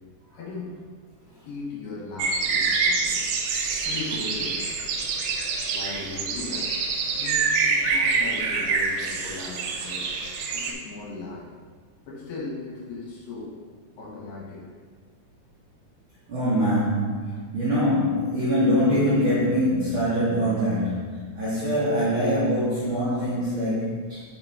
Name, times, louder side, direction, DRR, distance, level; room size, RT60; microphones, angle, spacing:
voice 1, 0.3-0.8 1.4-3.2 3.8-4.7 5.7-6.7 7.1-10.1 10.5-11.5 12.1-13.6 14.0-14.6, left 3 dB, 70° left, -4 dB, 2.7 m, -37 dB
sound 1, 2.2-10.7, right 4 dB, 80° right, 2.2 m, -26 dB
voice 2, 16.3-24.2, equal, 55° right, -11 dB, 1.5 m, -23 dB
5.6 x 3.9 x 4.6 m, 1.5 s
omnidirectional pair, 4.0 m